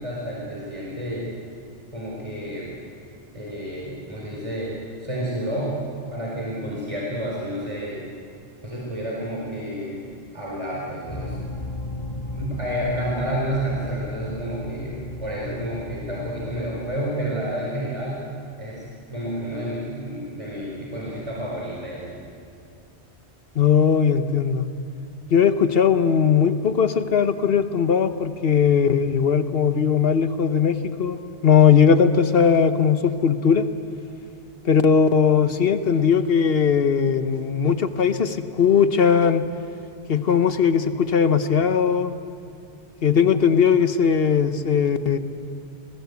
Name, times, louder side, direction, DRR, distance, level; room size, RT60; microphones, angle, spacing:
voice 1, 0.0-1.4 1.9-2.8 3.3-5.8 6.1-8.0 8.6-10.0 10.3-11.4 12.3-18.2 18.6-22.2, equal, 30° right, -4 dB, 4.5 m, -30 dB
sound 1, 11.1-17.0, left 1 dB, 25° left, 2.2 m, -34 dB
voice 2, 23.5-24.7 25.3-33.6 34.6-39.5 40.1-42.2 43.0-45.2, left 7 dB, 60° left, 10 dB, 1.3 m, -19 dB
29.5 x 20.0 x 8.2 m, 2.4 s
omnidirectional pair, 1.1 m